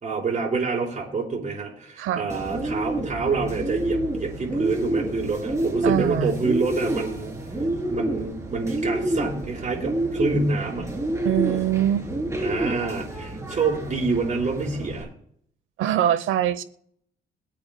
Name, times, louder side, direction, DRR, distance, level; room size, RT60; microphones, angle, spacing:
voice 1, 0.0-7.3 7.9-10.9 12.4-15.1, right 4 dB, 40° right, -2 dB, 4.8 m, -27 dB
voice 2, 2.0-2.3 5.8-6.4 11.2-12.1 15.8-16.6, right 11 dB, 90° right, 14 dB, 0.9 m, -23 dB
Bird, 2.3-15.0, right 1 dB, 15° right, 3.3 m, -28 dB
23.0 x 8.6 x 2.2 m, 0.66 s
cardioid pair, 90°, 20 cm